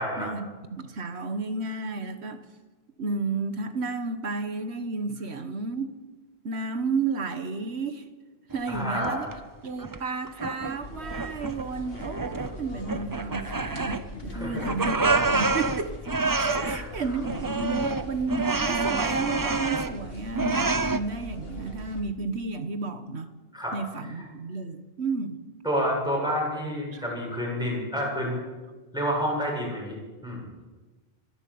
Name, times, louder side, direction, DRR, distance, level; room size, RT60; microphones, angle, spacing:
voice 1, 0.2-2.4 3.0-6.0 6.4-8.0 8.5-9.3 9.6-16.0 16.4-23.3 23.7-25.4 26.9-27.0, right 4 dB, 85° right, 10 dB, 1.8 m, -32 dB
sound 1, 8.5-9.4 9.8-10.8 11.1-11.7 12.0-12.6 12.9-14.3 14.6-16.8 17.2-20.0 20.3-21.0, right 3 dB, 20° right, 0.7 m, -27 dB
voice 2, 8.7-9.2 14.3-14.7 16.6-16.8 23.5-23.7 24.1-24.3 25.6-28.3 28.9-30.5, equal, 5° right, -3 dB, 7.7 m, -29 dB
sound 2, 10.8-22.0, left 1 dB, 65° left, 2.6 m, -40 dB
23.5 x 13.5 x 8.7 m, 1.3 s
omnidirectional pair, 1.1 m